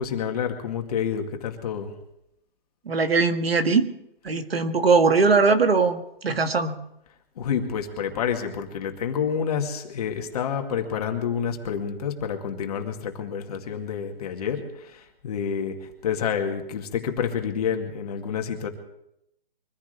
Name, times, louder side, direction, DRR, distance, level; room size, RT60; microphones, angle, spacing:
voice 1, 0.0-1.9 7.4-18.7, left 7 dB, 40° left, 4 dB, 2.4 m, -28 dB
voice 2, 2.9-3.9 4.2-6.7, right 4 dB, 85° right, 7 dB, 1.8 m, -20 dB
24.5 x 15.0 x 3.4 m, 0.78 s
hypercardioid pair, 155°, 30 cm